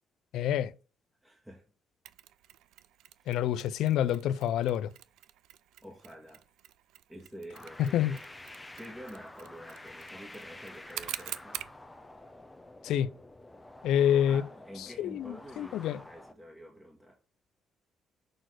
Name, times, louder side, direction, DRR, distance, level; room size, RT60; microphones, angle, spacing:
voice 1, 0.3-0.7 3.3-4.9 7.8-8.1 12.8-13.1 13.8-14.4 15.0-16.0, left 10 dB, 85° left, 0.4 m, -27 dB
voice 2, 1.2-1.6 3.2-3.3 5.8-6.4 7.1-8.2 8.7-11.6 14.3-17.2, equal, 5° right, 1.6 m, -48 dB
Mechanisms, 2.0-11.8, right 13 dB, 90° right, 0.4 m, -47 dB
sound 1, 7.5-16.3, left 2 dB, 15° left, 0.9 m, -49 dB
6.3 x 4.1 x 6.3 m
cardioid pair, 90°, 0 cm